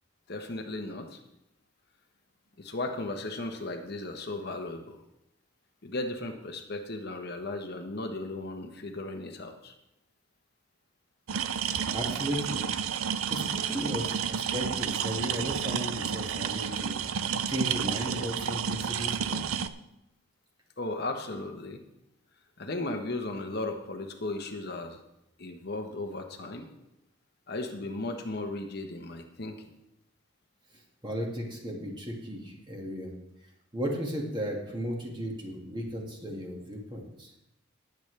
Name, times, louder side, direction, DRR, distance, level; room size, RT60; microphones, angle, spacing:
voice 1, 0.3-1.2 2.6-5.0 5.8-9.7 20.8-21.8 22.6-25.0 25.4-26.7 27.5-29.7, left 2 dB, 50° left, 4 dB, 1.1 m, -36 dB
sound 1, 11.3-19.7, right 7 dB, 90° right, 0.6 m, -31 dB
voice 2, 11.6-12.6 13.3-19.4 30.7-33.1 33.7-37.3, equal, 20° right, -1 dB, 2.0 m, -35 dB
19.0 x 8.1 x 3.4 m, 0.86 s
head